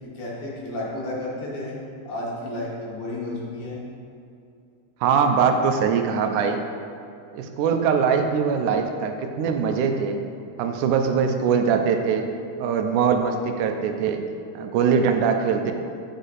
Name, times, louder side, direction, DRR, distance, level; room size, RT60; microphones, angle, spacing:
voice 1, 0.0-1.8 2.1-3.8, left 1 dB, 55° left, -5 dB, 2.1 m, -32 dB
voice 2, 5.0-6.6 7.3-10.2 10.6-12.3 12.6-14.2 14.6-15.7, right 6 dB, 90° right, 5 dB, 2.1 m, -22 dB
8.3 x 5.0 x 4.0 m, 2.6 s
omnidirectional pair, 3.4 m